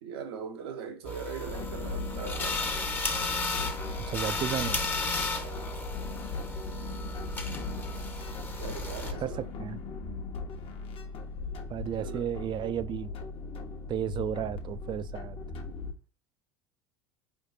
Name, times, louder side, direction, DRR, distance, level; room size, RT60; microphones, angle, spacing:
voice 1, 0.0-2.8 5.3-5.6 8.6-9.5 11.9-12.3, right 5 dB, 80° right, 1.0 m, -40 dB
sound 1, 1.0-9.1, left 2 dB, 15° left, 0.8 m, -34 dB
sound 2, 1.5-15.9, left 4 dB, 45° left, 1.0 m, -39 dB
voice 2, 4.1-4.9 9.2-9.8 11.7-13.1 13.9-15.4, right 10 dB, 35° right, 0.4 m, -33 dB
4.7 x 3.4 x 2.6 m
hypercardioid pair, 85°, 13 cm